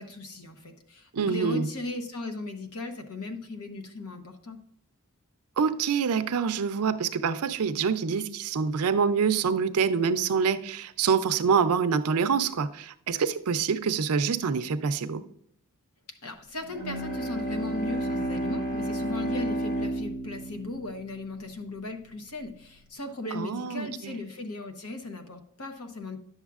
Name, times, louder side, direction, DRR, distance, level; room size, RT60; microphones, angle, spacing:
voice 1, 0.0-4.6 16.2-26.2, left 2 dB, 75° left, 1.0 m, -37 dB
voice 2, 1.1-1.7 5.6-15.2 23.3-24.2, right 6 dB, 80° right, 0.5 m, -26 dB
Bowed string instrument, 16.6-22.0, right 1 dB, 35° left, 1.8 m, -32 dB
10.5 x 7.2 x 2.4 m
head